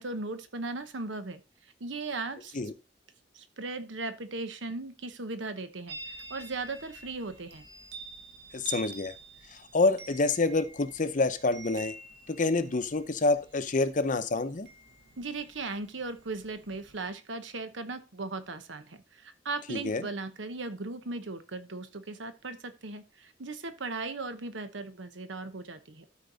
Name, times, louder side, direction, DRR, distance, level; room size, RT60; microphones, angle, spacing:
voice 1, 0.0-2.6 3.3-6.0 6.3-7.7 15.2-26.0, right 3 dB, 80° right, 1.0 m, -37 dB
Chime, 5.9-17.1, right 3 dB, 60° right, 1.5 m, -48 dB
voice 2, 8.5-9.1 9.7-11.9 12.3-14.7 19.7-20.1, left 3 dB, 45° left, 0.7 m, -27 dB
13.0 x 4.6 x 4.0 m
head